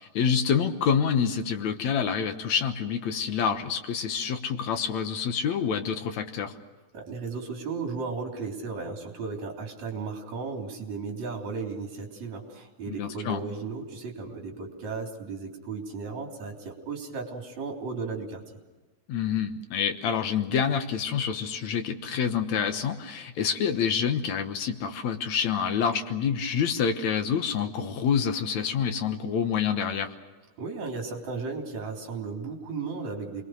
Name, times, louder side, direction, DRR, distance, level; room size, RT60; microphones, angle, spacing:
voice 1, 0.0-6.5 12.9-13.4 19.1-30.1, left 7 dB, 65° left, 7 dB, 2.1 m, -27 dB
voice 2, 6.9-18.4 30.6-33.4, right 4 dB, 50° right, 1 dB, 4.6 m, -35 dB
28.0 x 22.0 x 6.5 m, 1.2 s
omnidirectional pair, 4.4 m